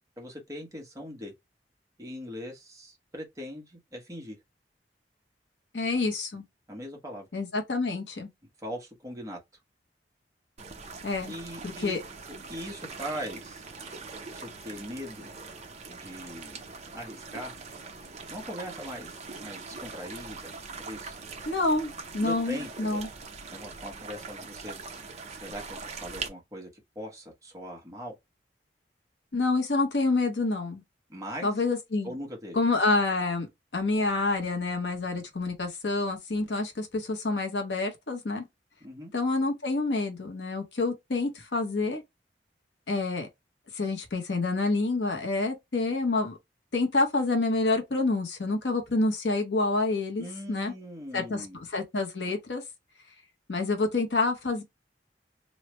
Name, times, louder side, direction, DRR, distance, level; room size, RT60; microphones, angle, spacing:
voice 1, 0.2-1.3 2.0-4.4 6.7-7.3 8.6-9.4 11.3-12.0 12.3-13.6 14.3-15.3 15.9-16.7 16.9-17.6 18.3-21.2 22.2-23.0 23.5-24.8 25.3-26.7 26.9-28.2 31.1-31.5 32.0-32.6 38.8-39.1 50.2-51.6, equal, 20° right, 1.1 m, -40 dB
voice 2, 5.7-6.4 7.3-8.3 11.0-11.3 11.6-12.0 21.5-23.1 29.3-30.8 31.4-32.1 32.5-33.5 33.7-38.4 39.1-42.0 42.9-43.3 43.7-46.4 46.7-50.7 51.1-51.5 51.7-52.6 53.5-54.6, left 3 dB, 70° left, 0.9 m, -28 dB
sound 1, 10.6-26.3, right 4 dB, 40° right, 0.7 m, -42 dB
3.1 x 2.1 x 3.1 m
head